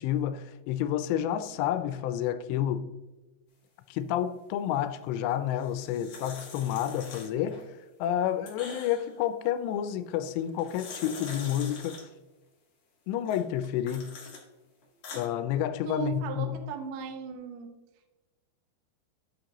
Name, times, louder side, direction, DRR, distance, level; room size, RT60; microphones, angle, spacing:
voice 1, 0.0-2.9 3.9-7.6 8.0-12.1 13.1-14.1 15.1-16.6, left 10 dB, 85° left, 2.7 m, -30 dB
sound 1, 5.5-7.6 8.0-9.2 10.4-12.0 13.3-14.4 14.8-15.3, left 4 dB, 55° left, 2.6 m, -44 dB
voice 2, 15.8-17.7, right 8 dB, 80° right, 1.9 m, -36 dB
12.0 x 5.3 x 2.9 m
omnidirectional pair, 4.9 m